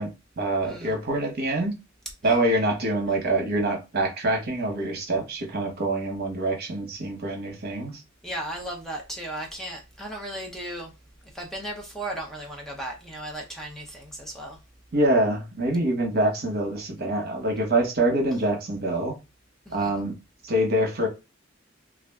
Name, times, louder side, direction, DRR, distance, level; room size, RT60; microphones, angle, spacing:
voice 1, 0.0-1.7 2.2-7.9 14.9-19.1 19.7-20.1 20.4-21.1, right 1 dB, 55° right, 0.9 m, -25 dB
voice 2, 0.6-0.9 8.2-10.9 11.3-14.6 19.7-20.0, right 1 dB, ahead, 0.5 m, -36 dB
2.3 x 2.1 x 3.4 m
head